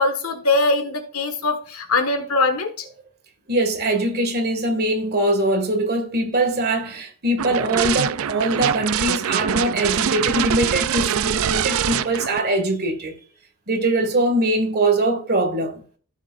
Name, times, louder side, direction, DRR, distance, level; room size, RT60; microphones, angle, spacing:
voice 1, 0.0-2.9, left 3 dB, 85° left, 1.6 m, -22 dB
voice 2, 3.5-13.2 13.7-15.8, right 1 dB, 45° right, 1.9 m, -22 dB
sound 1, 7.4-12.4, right 9 dB, 70° right, 0.4 m, -24 dB
15.5 x 6.5 x 2.5 m
head